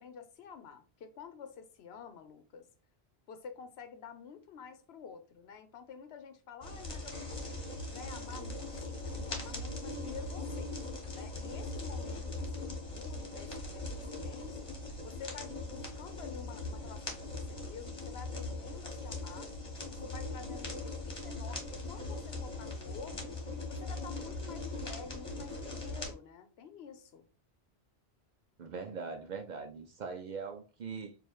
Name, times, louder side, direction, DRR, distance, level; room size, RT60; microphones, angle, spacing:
voice 1, 0.0-2.7 3.3-7.6 7.9-10.7 11.1-14.7 15.0-19.5 19.9-23.4 23.7-27.3, left 6 dB, 75° left, 0.9 m, -49 dB
sound 1, 6.6-26.1, left 2 dB, 30° left, 1.1 m, -40 dB
voice 2, 28.6-31.2, right 5 dB, 55° right, 0.5 m, -41 dB
4.6 x 2.4 x 3.0 m
omnidirectional pair, 1.1 m